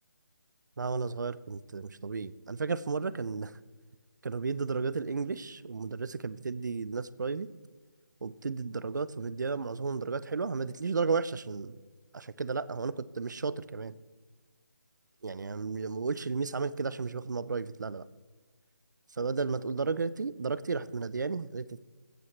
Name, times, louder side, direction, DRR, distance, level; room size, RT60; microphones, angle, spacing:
voice 1, 0.8-3.6 4.2-7.5 8.2-11.8 12.1-13.9 15.2-18.1 19.2-21.8, right 4 dB, 65° right, 18 dB, 0.7 m, -33 dB
15.0 x 14.5 x 3.2 m, 1.4 s
figure-of-eight pair, 165°, 11 cm